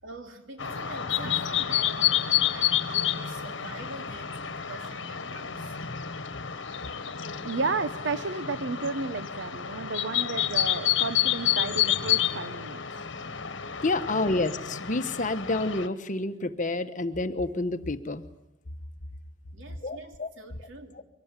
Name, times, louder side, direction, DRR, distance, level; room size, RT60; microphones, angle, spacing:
voice 1, 0.0-5.8 7.3-7.5 14.0-14.3 19.5-21.0, right 2 dB, 90° right, 5 dB, 3.2 m, -45 dB
sound 1, 0.6-15.9, left 11 dB, 70° left, 1.4 m, -29 dB
voice 2, 7.4-12.8, right 4 dB, 65° right, 12 dB, 0.9 m, -32 dB
voice 3, 13.8-18.2 19.8-20.3, left 2 dB, 40° left, 9 dB, 1.3 m, -29 dB
24.0 x 18.0 x 9.7 m, 0.90 s
head